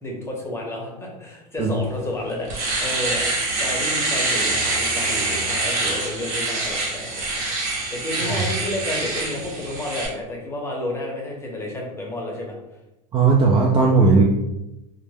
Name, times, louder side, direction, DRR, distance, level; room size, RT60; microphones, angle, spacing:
voice 1, 0.0-2.5 2.8-7.5 7.9-12.6, left 1 dB, 10° left, -2 dB, 0.7 m, -31 dB
Domestic sounds home sounds, 1.8-1.9 2.3-10.1, right 2 dB, 65° right, 1.0 m, -25 dB
voice 2, 13.1-14.2, right 4 dB, 25° right, -2 dB, 0.4 m, -17 dB
2.3 x 2.0 x 3.3 m, 0.94 s
hypercardioid pair, 105°, 21 cm